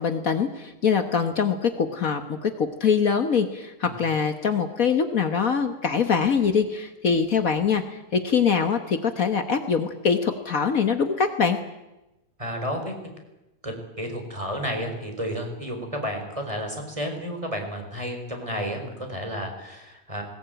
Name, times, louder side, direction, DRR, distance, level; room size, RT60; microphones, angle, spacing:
voice 1, 0.0-11.6, left 6 dB, 85° left, 7 dB, 0.7 m, -23 dB
voice 2, 12.4-12.9 13.6-20.2, equal, 10° right, 4 dB, 3.9 m, -31 dB
20.0 x 19.0 x 9.0 m, 0.99 s
omnidirectional pair, 3.5 m